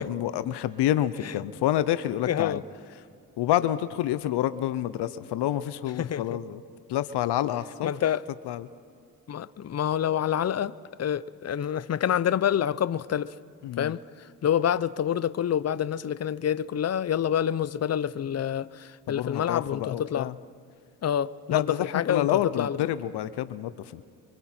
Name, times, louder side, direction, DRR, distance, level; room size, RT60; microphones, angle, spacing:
voice 1, 0.0-2.6 3.4-6.6 6.9-7.9 8.5-8.7 13.6-13.9 19.1-20.3 21.5-24.0, left 12 dB, 85° left, 0.7 m, -28 dB
voice 2, 2.3-2.6 6.0-6.2 7.8-8.2 9.3-13.3 13.8-14.0 14.4-20.3 21.0-22.8, left 9 dB, 40° left, 0.6 m, -27 dB
28.0 x 24.0 x 4.4 m
cardioid pair, 65°, 39 cm